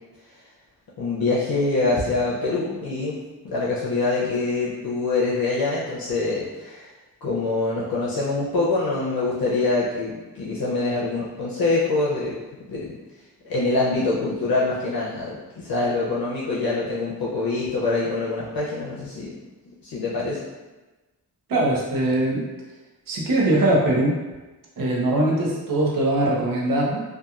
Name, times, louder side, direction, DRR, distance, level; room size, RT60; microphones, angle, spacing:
voice 1, 1.0-3.2 3.4-6.9 7.2-12.3 12.7-12.9 13.4-19.3 19.8-20.4, left 3 dB, 65° left, -7 dB, 0.6 m, -24 dB
voice 2, 21.5-22.4 23.1-24.2 24.8-27.0, right 1 dB, 60° right, -3 dB, 0.7 m, -21 dB
2.8 x 2.3 x 2.3 m, 1.2 s
wide cardioid pair, 95°, 38 cm